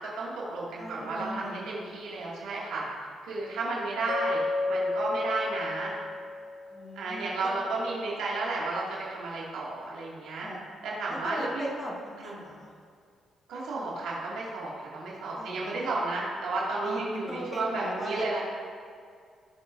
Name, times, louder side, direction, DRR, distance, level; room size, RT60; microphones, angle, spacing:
voice 1, 0.0-2.9 3.2-4.4 4.7-6.0 7.0-10.5 10.8-11.7 12.2-12.3 13.5-18.4, right 2 dB, 85° right, -6 dB, 2.1 m, -32 dB
voice 2, 0.8-1.7 6.7-7.5 10.4-10.6 11.1-12.7 15.3-15.8 16.8-18.3, equal, 25° left, -3 dB, 1.7 m, -38 dB
Mallet percussion, 4.1-7.1, left 2 dB, 65° left, 1.8 m, -32 dB
18.5 x 7.5 x 2.6 m, 2.2 s
cardioid pair, 95°, 0 cm